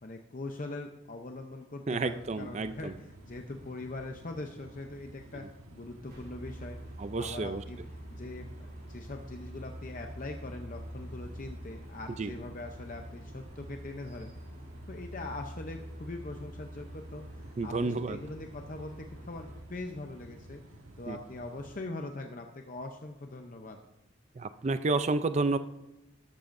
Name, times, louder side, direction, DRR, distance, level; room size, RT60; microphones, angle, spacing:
voice 1, 0.0-6.8 7.2-7.8 8.1-14.3 14.9-20.6 21.0-23.8, left 2 dB, 40° left, 4 dB, 0.6 m, -42 dB
voice 2, 1.9-2.9 7.0-7.6 12.2-12.3 17.6-18.2 21.1-21.2 24.4-25.6, right 3 dB, 30° right, 11 dB, 0.4 m, -30 dB
sound 1, 1.9-21.8, right 1 dB, 85° right, 1.4 m, -52 dB
sound 2, 6.0-19.6, equal, 50° right, 3.3 m, -46 dB
13.0 x 12.5 x 2.6 m, 0.92 s
head